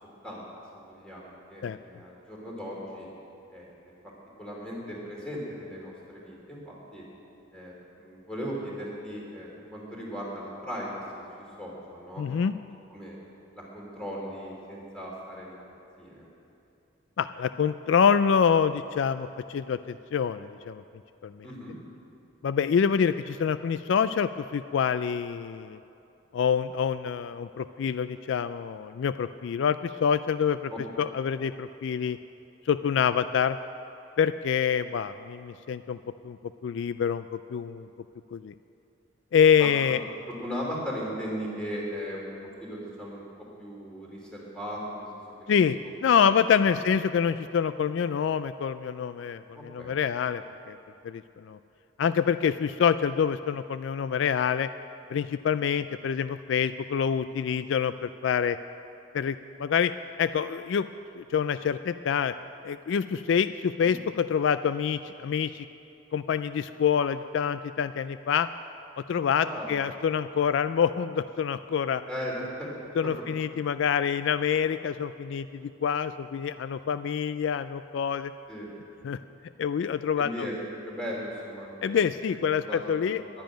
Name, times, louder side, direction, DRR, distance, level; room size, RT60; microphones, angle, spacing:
voice 1, 0.7-3.1 3.5-3.9 4.4-7.0 7.5-11.2 11.6-12.2 12.9-13.2 13.5-15.6 16.0-16.2 21.4-21.7 30.7-31.1 39.6-39.7 40.4-43.2 43.6-45.0 45.4-46.2 46.5-46.8 49.5-49.9 63.8-64.0 69.4-70.0 72.1-72.7 73.0-73.2 78.5-78.7 80.2-82.8 83.1-83.4, equal, 5° left, -4 dB, 3.1 m, -38 dB
voice 2, 12.2-12.5 17.2-20.8 21.2-21.5 22.4-25.8 26.3-30.7 31.0-32.2 32.7-33.6 34.2-36.0 36.2-36.4 36.6-37.9 38.3-38.5 39.3-40.0 45.5-45.8 46.0-50.8 51.0-51.6 52.0-54.7 55.1-58.6 59.1-59.9 60.2-60.9 61.1-62.3 62.6-65.7 66.1-68.5 69.1-72.0 73.0-78.3 79.0-79.2 79.6-80.5 81.8-83.2, left 7 dB, 65° left, 13 dB, 0.3 m, -26 dB
11.5 x 10.5 x 9.0 m, 2.7 s
head